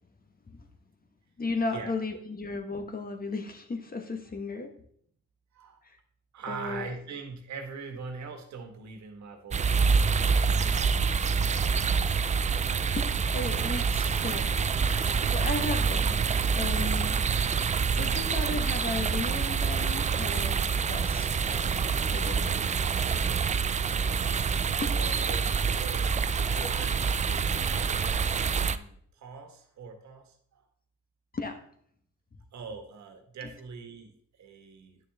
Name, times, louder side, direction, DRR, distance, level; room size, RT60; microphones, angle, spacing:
voice 1, 1.4-4.7 5.8-6.0 6.5-6.9 12.9-14.5 14.8-16.2 16.6-20.6 20.9-21.8 22.1-22.8 24.8-24.9 25.3-25.4 26.6-26.7 31.3-31.6, left 3 dB, 30° left, 6 dB, 1.3 m, -35 dB
voice 2, 6.3-11.8 24.6-30.6 32.5-35.0, right 4 dB, 65° right, 6 dB, 1.6 m, -43 dB
sound 1, 9.5-28.8, right 5 dB, 25° right, 0.4 m, -26 dB
9.8 x 6.5 x 3.6 m, 0.65 s
cardioid pair, 90°, 30 cm